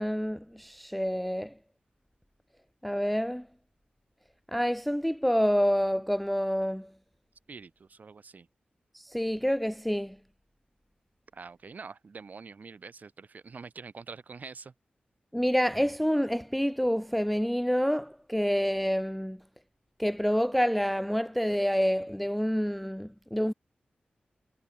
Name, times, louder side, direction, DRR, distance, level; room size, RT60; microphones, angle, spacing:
voice 1, 0.0-1.5 2.8-3.5 4.5-6.9 8.9-10.2 15.3-19.4 20.0-23.5, equal, ahead, 0.4 m, -28 dB
voice 2, 7.5-8.5 11.3-14.7, right 4 dB, 60° right, 4.8 m, -45 dB
wide cardioid pair, 85°, 3 cm